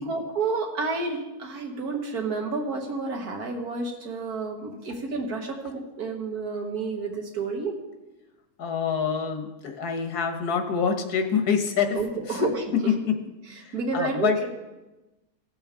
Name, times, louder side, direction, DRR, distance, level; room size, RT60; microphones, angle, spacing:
voice 1, 0.1-7.8 11.9-12.6 13.7-14.5, right 4 dB, 75° right, 2 dB, 1.9 m, -30 dB
voice 2, 8.6-12.0 12.3-12.5 13.6-14.4, left 6 dB, 80° left, 6 dB, 1.6 m, -26 dB
16.0 x 7.1 x 3.7 m, 1.1 s
omnidirectional pair, 1.6 m